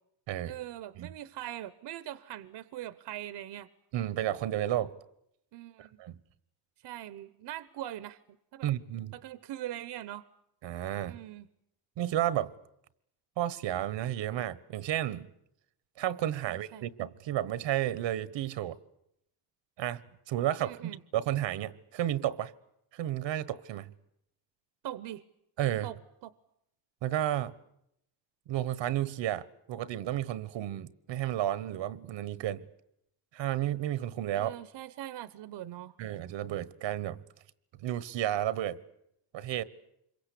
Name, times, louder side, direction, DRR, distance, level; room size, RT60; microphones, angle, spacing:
voice 1, 0.5-3.7 5.5-6.0 6.8-8.2 8.5-8.7 9.1-10.2 11.1-11.5 16.4-16.9 20.6-21.0 24.8-25.2 25.8-26.3 34.3-35.9, right 13 dB, 70° right, 0.9 m, -42 dB
voice 2, 3.9-4.9 5.8-6.2 8.6-9.1 10.6-11.2 12.0-12.5 13.4-15.3 16.0-18.8 19.8-20.0 20.3-22.5 22.9-23.9 25.6-25.9 27.0-27.5 28.5-32.7 33.3-34.5 36.0-37.2 37.8-38.8 39.3-39.6, right 12 dB, 90° right, 1.3 m, -32 dB
26.5 x 23.0 x 8.4 m
cardioid pair, 165°, 43 cm